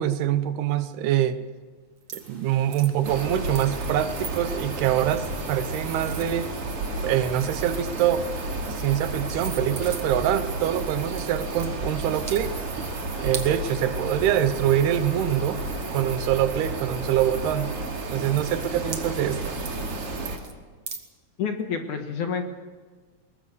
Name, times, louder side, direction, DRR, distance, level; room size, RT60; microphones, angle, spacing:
voice 1, 0.0-1.4 2.1-6.5 7.0-8.3 8.6-12.5 13.2-15.6 15.9-17.7 18.1-19.6, right 11 dB, 80° right, 12 dB, 2.9 m, -25 dB
sound 1, 2.0-2.3 2.7-3.0 3.5-3.9 4.2-4.3 5.4-6.9 7.2-8.2 8.9-9.0 9.3-10.3 11.0-11.7 12.2-12.4 13.3-13.5 15.0-15.1 15.4-16.5 17.2-17.4 17.8-17.9 18.1-18.4 18.9-19.4 19.7-19.9 20.3-20.5 20.9-21.0, right 7 dB, 60° right, 1.3 m, -39 dB
sound 2, 2.2-13.8, right 1 dB, 10° right, 3.9 m, -53 dB
sound 3, 3.0-20.4, right 2 dB, 40° right, 3.1 m, -32 dB
voice 2, 21.4-22.4, left 6 dB, 60° left, 5 dB, 2.4 m, -28 dB
22.0 x 19.5 x 6.8 m, 1.4 s
omnidirectional pair, 4.6 m